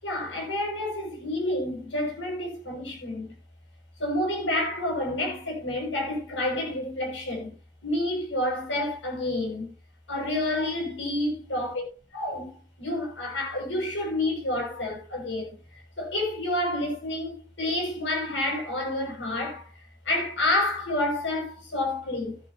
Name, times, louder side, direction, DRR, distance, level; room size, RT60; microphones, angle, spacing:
voice 1, 0.0-3.3 4.0-7.5 7.8-9.7 10.1-11.7 12.1-22.4, left 1 dB, 90° left, 6.6 m, -29 dB
15.0 x 10.5 x 2.9 m
head